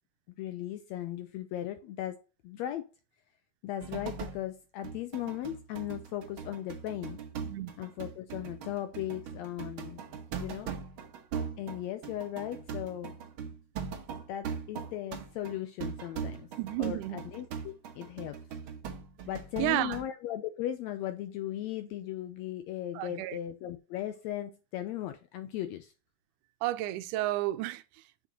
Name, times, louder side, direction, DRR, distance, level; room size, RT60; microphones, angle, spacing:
voice 1, 0.4-2.9 3.6-7.2 7.8-10.0 10.3-10.7 11.6-13.5 14.3-16.5 16.8-18.4 19.3-25.9, left 12 dB, 85° left, 1.6 m, -37 dB
sound 1, 3.8-4.5 4.8-20.0, right 6 dB, 65° right, 1.3 m, -40 dB
voice 2, 16.6-17.2 19.6-20.1 22.9-23.4 26.6-28.3, right 16 dB, 85° right, 2.1 m, -32 dB
6.5 x 6.2 x 2.8 m
omnidirectional pair, 3.6 m